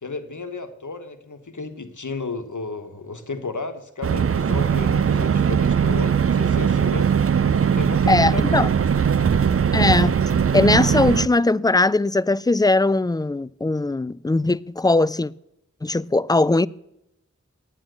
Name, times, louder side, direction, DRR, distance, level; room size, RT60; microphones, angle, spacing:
voice 1, 0.0-7.1 7.5-8.7, left 3 dB, 75° left, 1.3 m, -33 dB
sound 1, 4.0-11.3, right 7 dB, 50° right, 0.4 m, -20 dB
voice 2, 8.1-8.7 9.7-10.1 10.5-15.3 15.8-16.7, left 2 dB, 15° left, 0.3 m, -20 dB
9.0 x 8.9 x 7.7 m
wide cardioid pair, 45°, 30 cm